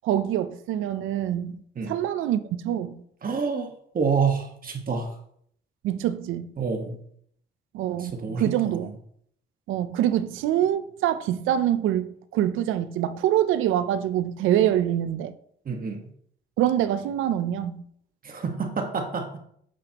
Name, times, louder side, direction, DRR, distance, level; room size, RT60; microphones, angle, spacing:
voice 1, 0.0-1.6 1.9-3.0 5.8-6.5 7.7-8.9 9.7-15.3 16.6-17.8, right 11 dB, 90° right, 0.5 m, -25 dB
voice 2, 3.2-5.1 6.6-7.0 8.0-8.9 15.6-16.0 18.2-19.4, right 5 dB, 45° right, 1.4 m, -28 dB
9.2 x 6.9 x 2.9 m
cardioid pair, 90°, 20 cm